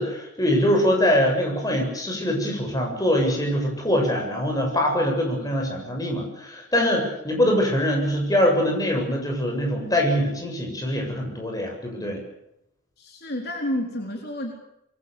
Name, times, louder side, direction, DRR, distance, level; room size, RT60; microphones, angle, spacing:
voice 1, 0.0-12.2, equal, 20° left, 2 dB, 7.8 m, -23 dB
voice 2, 13.0-14.5, left 1 dB, 50° left, 1 dB, 4.3 m, -30 dB
26.5 x 23.5 x 7.1 m, 0.81 s
head